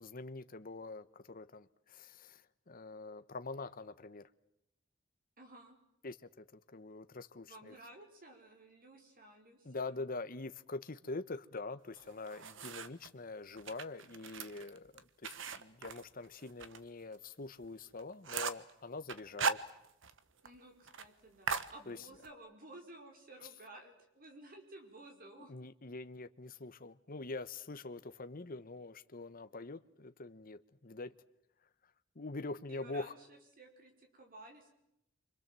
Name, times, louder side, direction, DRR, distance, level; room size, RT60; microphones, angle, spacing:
voice 1, 0.0-4.3 6.0-7.7 9.6-19.6 21.9-22.1 25.5-31.2 32.1-33.1, left 3 dB, 45° left, 1.0 m, -45 dB
voice 2, 5.4-5.8 7.4-10.0 20.4-25.5 32.7-34.7, right 2 dB, 45° right, 5.4 m, -55 dB
sound 1, 12.0-13.1 13.6-16.8 17.1-17.2 17.6-17.7 18.0-18.7 19.1-20.2 20.5-20.6 20.9-21.1 21.5-22.3, right 5 dB, 70° right, 1.3 m, -39 dB
28.5 x 25.5 x 7.6 m
head